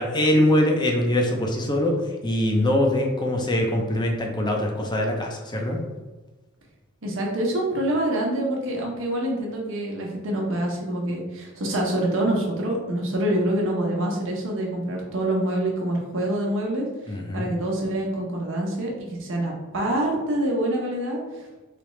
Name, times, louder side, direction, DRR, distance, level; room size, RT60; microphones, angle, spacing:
voice 1, 0.0-1.9 2.2-5.8 17.1-17.5, left 1 dB, 20° left, 1 dB, 0.6 m, -23 dB
voice 2, 7.0-16.9 17.3-21.2, right 1 dB, 60° right, -1 dB, 1.0 m, -26 dB
3.6 x 3.4 x 3.1 m, 1.2 s
head